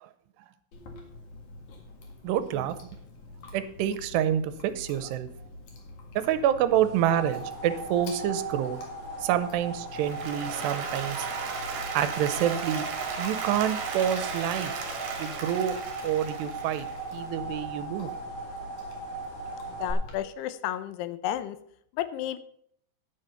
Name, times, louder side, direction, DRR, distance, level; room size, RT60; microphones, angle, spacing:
Chewing mastication, 0.7-20.2, left 2 dB, 55° left, 3.0 m, -47 dB
voice 1, 2.2-2.8 3.5-5.3 6.2-8.8 9.2-11.3 11.9-12.9 13.2-14.7 15.2-15.8 16.0-16.9 17.1-18.1, right 10 dB, 85° right, 12 dB, 2.8 m, -27 dB
sound 1, 6.7-19.9, right 3 dB, 30° left, 1.9 m, -38 dB
Applause, 9.9-17.1, right 5 dB, 55° right, 2.7 m, -35 dB
voice 2, 19.7-21.6 21.9-22.4, left 12 dB, 80° left, 13 dB, 2.6 m, -32 dB
10.5 x 9.1 x 5.6 m, 0.68 s
omnidirectional pair, 4.9 m